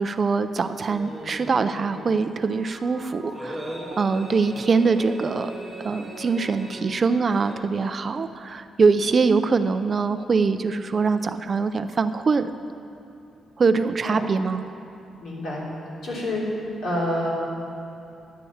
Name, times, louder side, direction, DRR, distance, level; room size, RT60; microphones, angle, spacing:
voice 1, 0.0-5.5 5.8-12.5 13.6-14.6, right 4 dB, 30° right, 10 dB, 0.3 m, -23 dB
sound 1, 0.9-7.5, right 1 dB, ahead, 1.7 m, -39 dB
Mallet percussion, 1.1-2.0 2.3-7.8, right 1 dB, 25° left, 2.8 m, -45 dB
voice 2, 15.2-15.6 16.0-16.4 16.8-17.3, left 1 dB, 65° left, -5 dB, 3.0 m, -27 dB
11.0 x 8.2 x 7.1 m, 2.7 s
cardioid pair, 170°, 0 cm